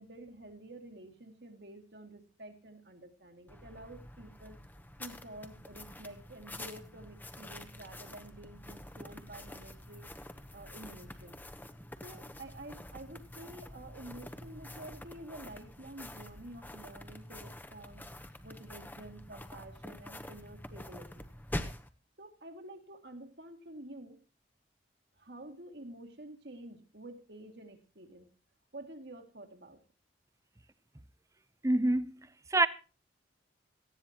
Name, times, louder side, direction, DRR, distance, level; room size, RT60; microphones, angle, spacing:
voice 1, 0.0-4.6 5.0-10.1 10.5-11.4 12.0-18.0 18.4-21.3 22.2-24.2 25.2-28.3 28.7-29.8, right 1 dB, 60° right, 2.3 m, -49 dB
sound 1, 3.5-21.9, left 1 dB, 10° left, 0.9 m, -46 dB
voice 2, 31.6-32.7, right 2 dB, 15° right, 0.7 m, -27 dB
18.0 x 14.5 x 2.9 m
head